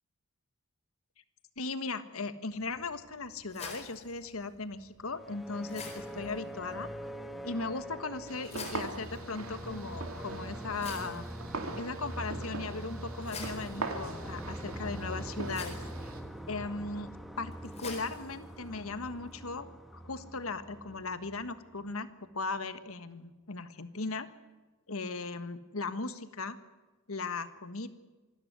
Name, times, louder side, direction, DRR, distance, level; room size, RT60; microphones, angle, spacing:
voice 1, 1.6-6.9 7.4-11.3 11.7-15.8 16.5-17.1 17.4-19.7 19.9-24.3 24.9-26.6 27.1-27.9, left 3 dB, 85° left, 11 dB, 1.5 m, -38 dB
sound 1, 2.5-19.5, left 4 dB, 30° left, 4.4 m, -50 dB
sound 2, 5.1-21.9, equal, ahead, 1.4 m, -43 dB
sound 3, 8.3-16.2, right 3 dB, 90° right, 2.6 m, -42 dB
26.0 x 13.0 x 9.6 m, 1.2 s
head